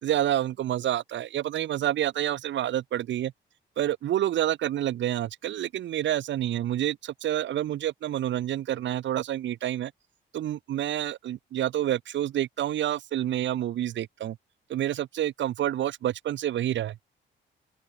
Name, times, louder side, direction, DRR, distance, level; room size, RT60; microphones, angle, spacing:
voice 1, 0.0-3.3 3.8-9.9 10.3-14.4 14.7-17.0, right 12 dB, 70° right, 1.3 m, -28 dB
open air
cardioid pair, 90°, 20 cm